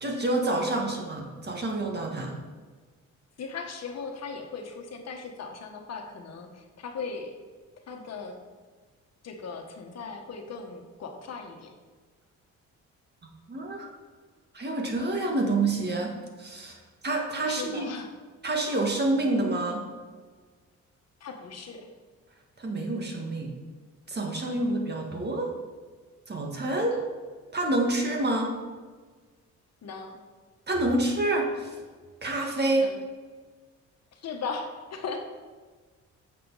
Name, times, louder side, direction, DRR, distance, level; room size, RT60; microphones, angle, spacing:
voice 1, 0.0-2.4 13.5-13.9 14.5-16.8 17.0-17.8 18.4-19.9 22.6-23.5 24.1-25.5 26.3-26.9 27.5-28.6 30.7-31.8 32.2-32.9, right 2 dB, 35° right, 1 dB, 1.9 m, -27 dB
voice 2, 3.4-7.3 7.9-8.4 9.2-11.7 17.4-18.1 21.2-21.9 26.8-27.0 29.8-30.2 32.8-33.0 34.1-35.2, left 4 dB, 60° left, 3 dB, 1.4 m, -38 dB
9.3 x 6.9 x 4.1 m, 1.4 s
cardioid pair, 90°, 30 cm